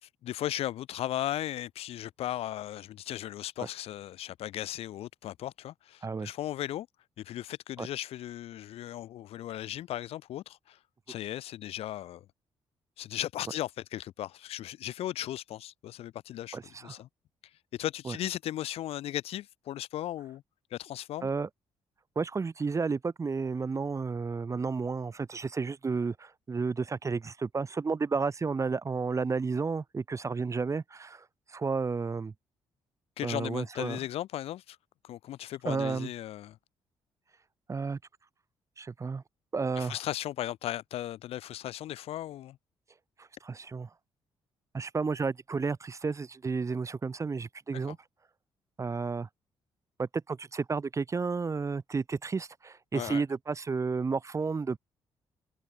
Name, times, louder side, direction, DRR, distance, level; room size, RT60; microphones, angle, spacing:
voice 1, 0.0-6.9 7.2-10.8 11.1-12.3 13.0-17.1 17.7-20.4 20.7-21.3 33.2-34.8 35.0-36.6 39.8-42.6 52.9-53.2, left 13 dB, 80° left, 3.7 m, -36 dB
voice 2, 16.5-17.0 18.0-18.2 21.2-21.5 22.2-32.3 33.2-34.0 35.6-36.1 37.7-38.0 38.8-39.2 39.5-40.0 43.2-43.9 44.7-48.0 48.8-49.3 50.0-54.8, right 4 dB, 30° right, 0.8 m, -32 dB
cardioid pair, 75°, 10 cm